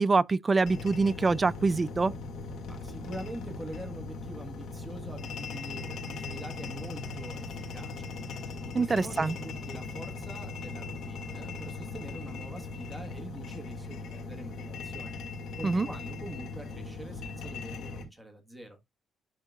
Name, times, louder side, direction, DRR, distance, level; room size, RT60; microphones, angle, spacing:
voice 1, 0.0-2.1 8.7-9.3 15.6-15.9, right 3 dB, 25° right, 0.3 m, -25 dB
sound 1, 0.6-18.0, left 3 dB, 70° left, 2.0 m, -39 dB
voice 2, 2.7-15.2 15.5-18.8, right 1 dB, 5° right, 1.4 m, -45 dB
11.0 x 3.8 x 2.3 m
cardioid pair, 125°, 0 cm